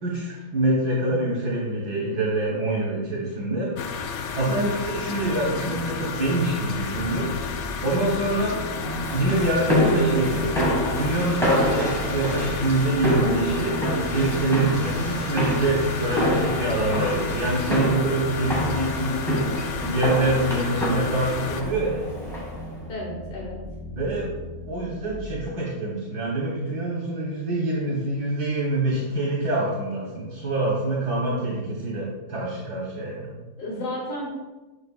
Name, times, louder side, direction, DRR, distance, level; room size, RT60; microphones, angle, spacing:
voice 1, 0.0-8.6 8.9-10.5 10.9-13.8 14.1-22.1 23.9-33.4, right 2 dB, 80° right, -5 dB, 1.7 m, -26 dB
sound 1, 3.8-21.6, left 5 dB, 65° left, 0.7 m, -32 dB
voice 2, 4.4-4.9 22.9-23.6 33.6-34.3, equal, 85° left, -3 dB, 1.7 m, -33 dB
sound 2, 6.7-25.5, left 2 dB, 20° right, 1.0 m, -39 dB
sound 3, 8.8-22.7, equal, ahead, 1.5 m, -27 dB
7.7 x 5.1 x 2.4 m, 1.2 s
omnidirectional pair, 1.7 m